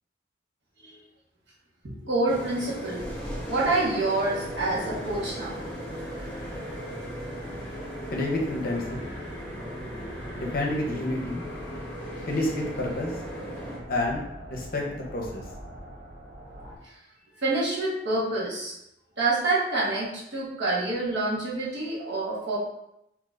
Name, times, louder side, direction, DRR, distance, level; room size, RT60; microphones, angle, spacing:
voice 1, 1.8-3.0 3.5-5.8 17.4-18.8 19.2-22.6, right 2 dB, 70° right, -7 dB, 1.2 m, -27 dB
sound 1, 2.3-13.8, equal, 10° left, 0.8 m, -37 dB
heavy drone, 4.3-16.8, equal, 40° right, 1.0 m, -44 dB
voice 2, 8.1-9.0 10.3-11.4 12.3-13.1 13.9-14.2 14.5-14.8 15.1-15.4, left 1 dB, 50° left, 0 dB, 0.6 m, -29 dB
4.0 x 2.9 x 2.4 m, 0.83 s
head